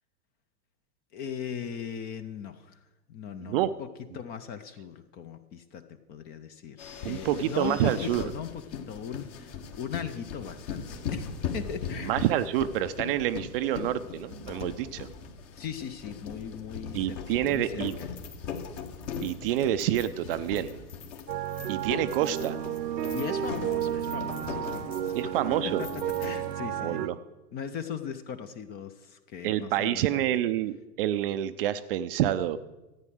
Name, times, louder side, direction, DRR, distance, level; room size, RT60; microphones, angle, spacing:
voice 1, 1.1-2.8 3.1-3.9 4.1-12.2 15.6-18.1 21.5-21.7 23.1-25.3 25.6-25.9 26.2-27.1 27.5-30.3, left 7 dB, 20° left, 11 dB, 0.5 m, -39 dB
voice 2, 3.4-3.7 7.0-8.2 12.0-15.1 16.9-17.9 19.2-20.7 21.7-22.6 25.1-25.8 26.8-27.2 29.4-32.6, right 12 dB, 40° right, 12 dB, 0.5 m, -28 dB
sound 1, 6.8-26.6, left 6 dB, 45° left, 1.8 m, -39 dB
sound 2, 21.3-27.1, right 10 dB, 80° right, 0.9 m, -32 dB
13.5 x 9.0 x 6.3 m, 1.1 s
hypercardioid pair, 105°, 48 cm